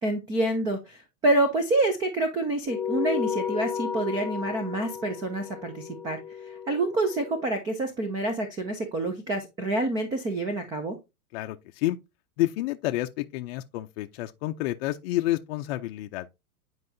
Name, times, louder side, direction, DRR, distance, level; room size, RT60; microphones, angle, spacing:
voice 1, 0.0-6.2 6.5-11.0, right 2 dB, 10° right, 0.3 m, -27 dB
sound 1, 2.7-7.5, left 7 dB, 5° left, 1.0 m, -33 dB
voice 2, 11.3-12.0 12.4-16.3, left 16 dB, 45° left, 0.5 m, -29 dB
9.6 x 4.7 x 2.6 m
hypercardioid pair, 120°, 45 cm